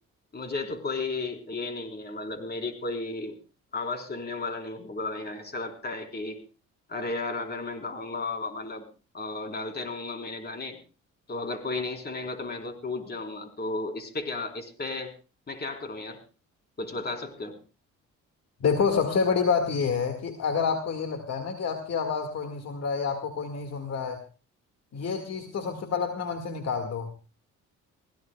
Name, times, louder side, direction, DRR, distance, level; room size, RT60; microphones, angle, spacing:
voice 1, 0.3-3.4 3.7-6.4 6.9-8.8 9.1-10.8 11.3-15.1 15.5-16.2 16.8-17.5, left 3 dB, 35° left, 5 dB, 4.0 m, -34 dB
voice 2, 18.6-24.2 24.9-27.1, left 5 dB, 55° left, 6 dB, 2.0 m, -28 dB
24.5 x 16.5 x 2.3 m, 0.33 s
cardioid pair, 90°, 30 cm